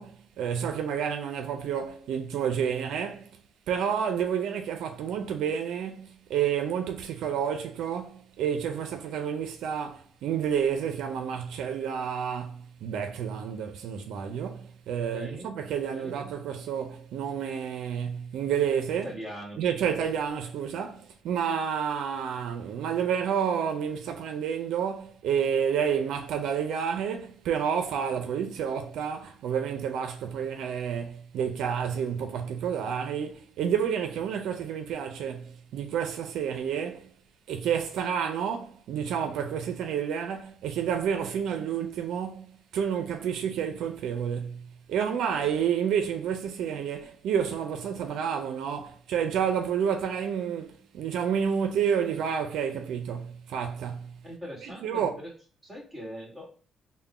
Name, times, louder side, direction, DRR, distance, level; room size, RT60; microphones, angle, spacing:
voice 1, 0.0-3.3 3.7-19.1 19.6-37.1 37.5-42.5 42.7-44.6 44.9-54.1 54.6-55.1, right 8 dB, 85° right, 0.4 m, -30 dB
voice 2, 15.1-15.5 15.9-16.1 19.0-19.6 54.2-55.3 55.6-56.5, equal, 10° right, 1.7 m, -41 dB
3.6 x 2.1 x 4.1 m
cardioid pair, 90°, 0 cm